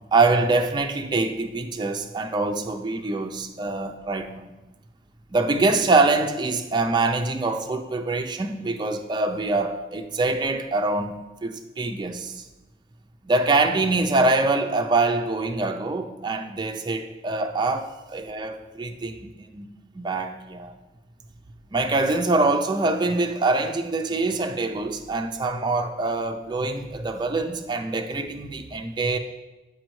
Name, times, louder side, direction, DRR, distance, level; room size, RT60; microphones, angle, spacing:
voice 1, 0.1-4.5 5.3-12.4 13.2-19.7 19.9-20.7 21.7-29.2, right 3 dB, 25° right, 0.4 m, -24 dB
6.3 x 5.0 x 3.1 m
head